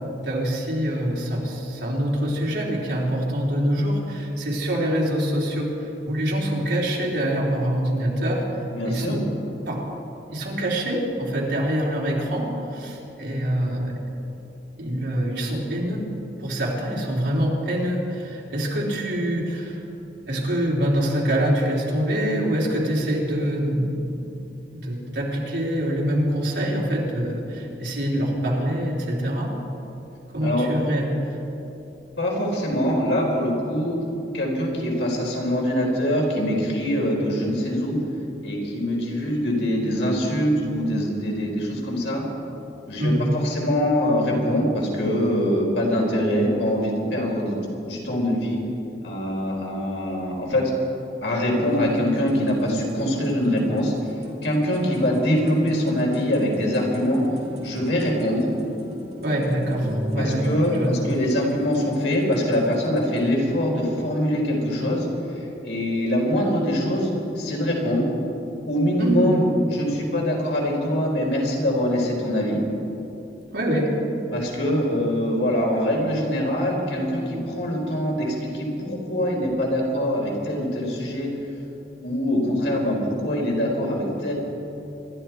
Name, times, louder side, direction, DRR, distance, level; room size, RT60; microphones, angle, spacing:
voice 1, 0.2-8.5 8.8-9.2 9.7-9.8 10.3-13.9 14.8-16.1 16.4-19.8 20.3-24.3 24.7-29.5 30.3-31.2 43.0-43.3 59.2-61.2 69.0-69.4 73.5-73.9, equal, 80° right, -4 dB, 3.8 m, -25 dB
voice 2, 8.7-9.2 30.4-30.7 32.2-34.0 34.3-38.0 38.4-42.2 42.9-47.5 47.8-48.6 49.0-50.7 51.2-57.2 57.6-58.4 60.2-68.1 68.7-69.4 69.7-72.6 74.3-81.3 82.0-84.3, equal, 90° left, -2 dB, 4.1 m, -23 dB
sound 1, 51.6-63.3, left 1 dB, 35° right, 2.4 m, -36 dB
25.5 x 12.0 x 4.6 m, 2.9 s
head